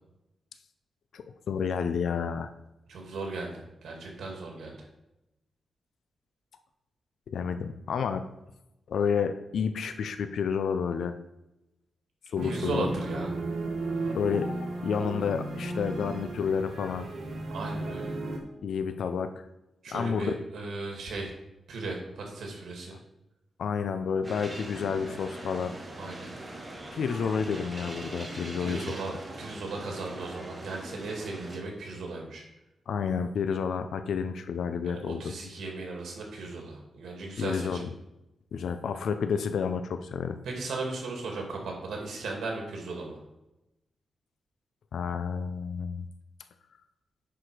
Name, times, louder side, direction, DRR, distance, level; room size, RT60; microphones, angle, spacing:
voice 1, 1.1-2.5 7.3-8.2 8.9-11.1 12.3-12.9 14.1-14.5 14.8-17.1 18.6-19.4 19.9-20.4 23.6-25.7 26.9-28.9 32.9-35.3 37.4-37.9 38.5-40.4 44.9-46.1, left 6 dB, 70° left, 9 dB, 0.5 m, -30 dB
voice 2, 2.9-4.9 12.4-13.3 17.5-18.2 19.8-21.3 21.7-23.0 26.0-26.3 28.6-32.4 34.8-37.8 40.4-43.2, right 3 dB, 80° right, 1 dB, 2.4 m, -36 dB
sound 1, 12.4-18.4, right 2 dB, 60° right, 1.5 m, -34 dB
sound 2, 24.2-31.6, right 1 dB, 20° right, 1.3 m, -41 dB
10.0 x 4.8 x 4.9 m, 0.94 s
wide cardioid pair, 180°, 0 cm